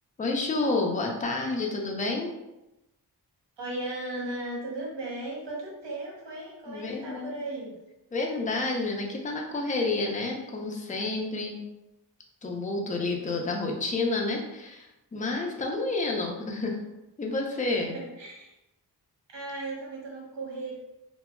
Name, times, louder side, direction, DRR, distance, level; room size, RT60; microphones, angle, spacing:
voice 1, 0.2-2.3 6.7-7.4 8.1-11.6 12.4-16.8 17.2-18.0, left 3 dB, 20° left, 0 dB, 0.5 m, -29 dB
voice 2, 3.6-7.7 17.8-18.5 19.3-20.7, right 2 dB, 75° right, -2 dB, 0.9 m, -36 dB
2.2 x 2.0 x 3.4 m, 0.94 s
cardioid pair, 55°, 43 cm